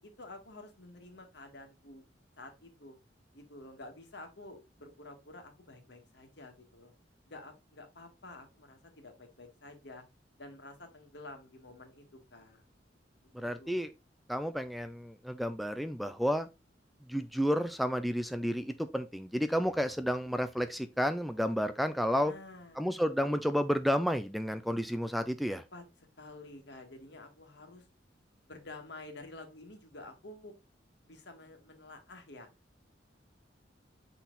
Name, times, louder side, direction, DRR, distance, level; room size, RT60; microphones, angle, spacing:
voice 1, 0.0-2.0 2.4-3.0 3.3-6.9 7.3-10.0 10.4-12.6 13.4-13.9 22.2-23.0 25.7-25.8 26.2-27.8 28.5-30.5 31.0-32.5, left 2 dB, 65° left, 1.7 m, -50 dB
voice 2, 13.3-13.9 14.3-16.5 17.1-22.3 22.8-25.6, equal, ahead, 0.3 m, -31 dB
6.1 x 4.2 x 3.8 m
head